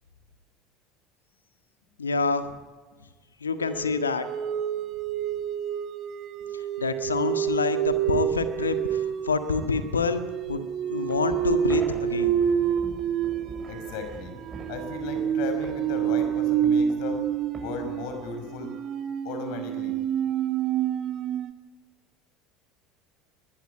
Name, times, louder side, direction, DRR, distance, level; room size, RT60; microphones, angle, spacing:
voice 1, 2.0-2.5 3.4-4.2 6.5-10.2 10.5-12.4, left 4 dB, 80° left, 9 dB, 1.6 m, -27 dB
sound 1, 3.6-21.5, right 9 dB, 45° right, 1.8 m, -28 dB
sound 2, 10.5-18.6, right 2 dB, 20° right, 7.5 m, -44 dB
voice 2, 13.7-14.4 14.7-17.2 17.6-18.7 19.2-19.9, left 5 dB, 60° left, 7 dB, 5.6 m, -36 dB
21.0 x 20.5 x 10.0 m, 1.4 s
figure-of-eight pair, 65°, 0 cm